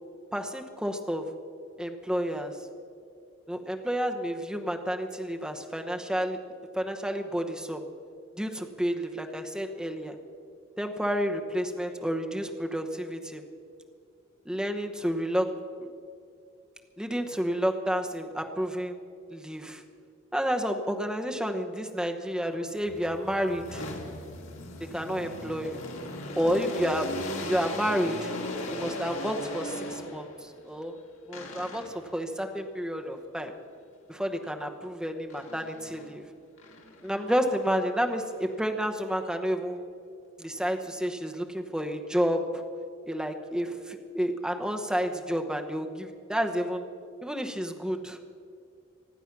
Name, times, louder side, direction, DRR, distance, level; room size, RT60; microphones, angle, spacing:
voice 1, 0.3-1.3 1.8-2.6 3.5-6.4 6.7-7.8 8.4-10.1 10.8-13.4 14.5-15.5 17.0-19.0 19.3-19.8 20.3-23.8 24.9-25.8 26.4-28.3 28.7-30.9 31.3-33.5 34.1-36.2 37.0-39.9 40.4-42.6 43.0-46.8 47.2-48.2, equal, 5° right, 3 dB, 0.9 m, -30 dB
sound 1, 22.8-30.4 31.3-32.1 35.3-36.1 36.6-39.0, left 1 dB, 70° left, 2.6 m, -39 dB
24.5 x 9.1 x 5.9 m, 2.4 s
head